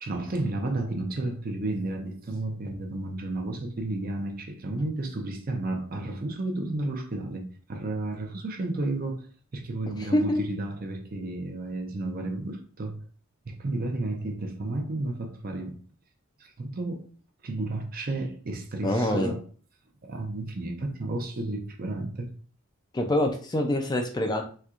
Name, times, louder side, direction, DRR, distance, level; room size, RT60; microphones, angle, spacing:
voice 1, 0.0-7.4 7.7-13.0 13.5-15.8 16.4-17.1 17.4-19.4 20.0-22.3, right 2 dB, 40° right, 0.6 m, -32 dB
voice 2, 18.8-19.3 22.9-24.4, left 1 dB, 20° left, 0.4 m, -25 dB
4.3 x 2.3 x 2.4 m
head